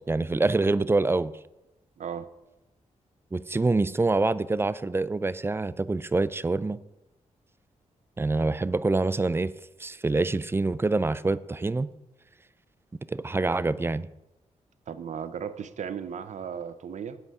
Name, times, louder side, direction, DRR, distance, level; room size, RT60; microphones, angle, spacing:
voice 1, 0.0-1.3 3.3-6.8 8.2-9.5 9.8-11.9 13.1-14.1, right 3 dB, 20° right, 17 dB, 0.4 m, -26 dB
voice 2, 2.0-2.3 14.9-17.2, right 7 dB, 65° right, 13 dB, 0.7 m, -36 dB
10.5 x 8.1 x 4.9 m, 0.96 s
cardioid pair, 90°, 13 cm